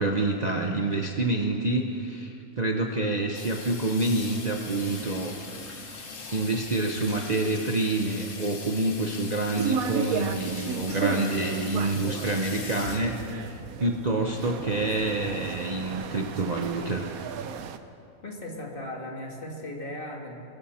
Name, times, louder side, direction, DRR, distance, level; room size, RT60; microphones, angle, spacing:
voice 1, 0.0-5.3 6.3-13.5 13.8-17.1, right 2 dB, 35° right, 2 dB, 0.8 m, -27 dB
Water tap faucet / Sink (filling or washing), 3.3-14.2, left 3 dB, 60° left, 1.8 m, -41 dB
sound 1, 9.6-17.8, right 6 dB, 80° right, 1.2 m, -34 dB
voice 2, 18.2-20.4, left 1 dB, 40° left, 0 dB, 1.9 m, -37 dB
22.5 x 13.5 x 4.3 m, 2.6 s
omnidirectional pair, 1.5 m